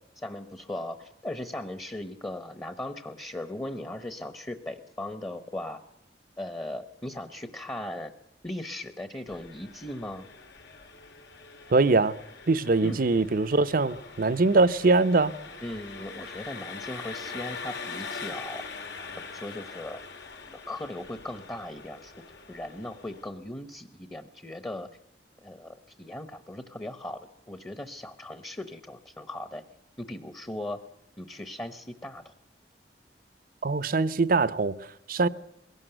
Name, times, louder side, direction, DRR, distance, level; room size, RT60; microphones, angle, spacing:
voice 1, 0.2-5.8 6.4-8.1 8.4-10.3 12.8-13.0 15.6-18.7 19.2-20.0 20.4-22.1 22.5-24.9 25.4-29.6 30.0-30.8 31.2-32.3, left 1 dB, 15° left, 0.9 m, -38 dB
Engine, 9.3-23.3, left 4 dB, 80° left, 2.2 m, -43 dB
voice 2, 11.7-12.2 12.5-15.3 33.6-35.3, right 3 dB, 55° right, 0.7 m, -23 dB
21.5 x 17.5 x 7.9 m
head